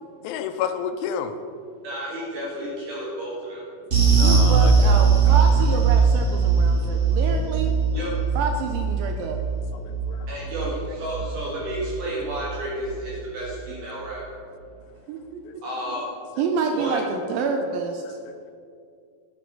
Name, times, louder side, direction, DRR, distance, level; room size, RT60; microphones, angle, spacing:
voice 1, 0.2-1.3 4.1-5.4 7.9-8.1 9.7-10.3 15.4-15.5 18.3-18.4, left 8 dB, 85° left, 8 dB, 2.5 m, -31 dB
voice 2, 1.8-3.6 7.9-8.1 10.3-14.2 15.6-16.0 16.7-17.0, right 1 dB, 65° right, -5 dB, 2.9 m, -31 dB
sound 1, 3.9-12.6 12.9-13.1 13.5-13.6, right 5 dB, 30° right, 1.3 m, -20 dB
voice 3, 4.2-7.7 8.4-9.4 10.9-11.0 15.1-15.4 16.4-18.2, right 5 dB, 85° right, 4 dB, 2.3 m, -28 dB
10.5 x 6.6 x 6.0 m, 2.3 s
omnidirectional pair, 4.2 m